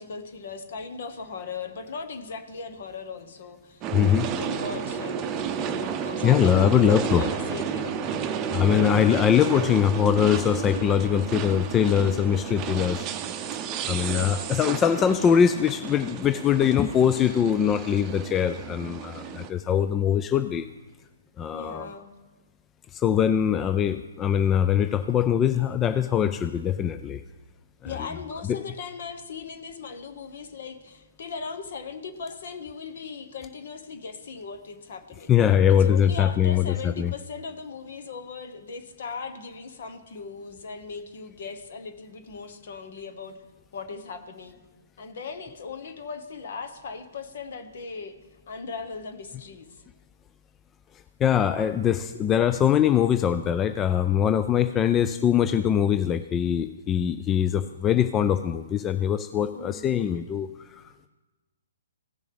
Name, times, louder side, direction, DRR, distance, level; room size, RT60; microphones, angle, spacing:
voice 1, 0.0-8.2 14.0-14.6 21.5-22.1 27.8-35.3 35.7-43.4 43.7-44.6 45.0-48.2 48.5-49.8 59.5-59.9, left 5 dB, 60° left, 8 dB, 1.2 m, -38 dB
sound 1, 3.8-19.5, right 7 dB, 25° right, 0.7 m, -32 dB
voice 2, 3.9-4.3 6.2-7.2 8.5-13.1 13.9-20.7 21.4-21.9 22.9-27.2 28.5-28.6 35.3-37.1 51.2-60.5 60.7-60.8, left 9 dB, 20° left, 10 dB, 0.3 m, -22 dB
16.0 x 6.2 x 3.5 m, 1.2 s
hypercardioid pair, 135°, 0 cm